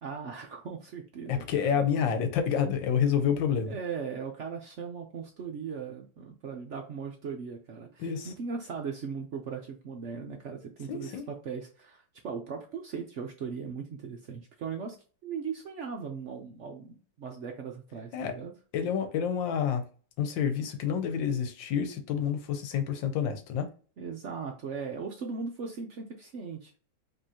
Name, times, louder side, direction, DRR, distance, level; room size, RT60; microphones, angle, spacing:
voice 1, 0.0-1.8 3.7-15.0 15.2-18.5 24.0-26.7, right 6 dB, 70° right, 0.6 m, -38 dB
voice 2, 1.3-3.8 8.0-8.3 10.9-11.2 18.1-18.3 18.7-19.8 20.2-23.7, left 8 dB, 80° left, 1.5 m, -28 dB
5.4 x 3.0 x 2.8 m
omnidirectional pair, 2.0 m